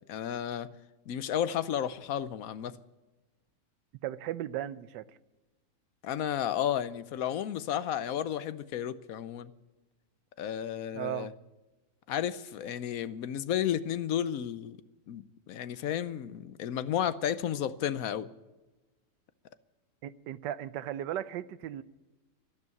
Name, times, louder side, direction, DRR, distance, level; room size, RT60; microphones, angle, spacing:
voice 1, 0.1-0.7 1.1-2.8 6.0-9.5 10.4-11.3 12.1-14.8 15.1-18.3, left 10 dB, 65° left, 1.0 m, -32 dB
voice 2, 4.0-5.0 10.9-11.3 20.0-21.8, right 12 dB, 90° right, 1.3 m, -36 dB
12.5 x 12.0 x 8.3 m
omnidirectional pair, 1.8 m